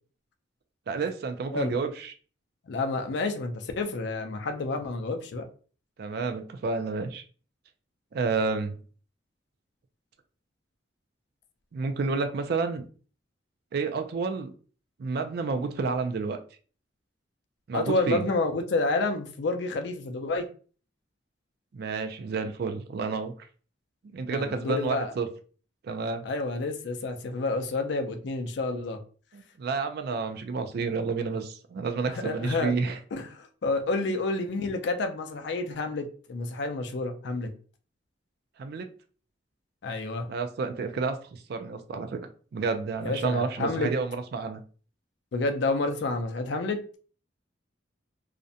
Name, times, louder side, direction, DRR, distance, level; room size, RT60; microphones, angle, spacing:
voice 1, 0.9-2.1 6.0-7.2 8.1-8.8 11.7-12.9 13.7-14.5 15.0-16.4 17.7-18.3 21.7-23.3 24.0-25.3 25.8-26.2 29.3-33.0 34.1-34.2 38.6-38.9 40.3-42.2 42.5-44.6, right 4 dB, 55° right, 7 dB, 0.3 m, -30 dB
voice 2, 2.7-5.5 17.7-20.5 24.3-25.1 26.2-29.0 32.1-32.8 33.1-37.5 39.8-40.3 43.0-43.9 45.3-46.8, left 3 dB, 60° left, 6 dB, 0.4 m, -29 dB
2.4 x 2.1 x 2.6 m, 0.40 s
head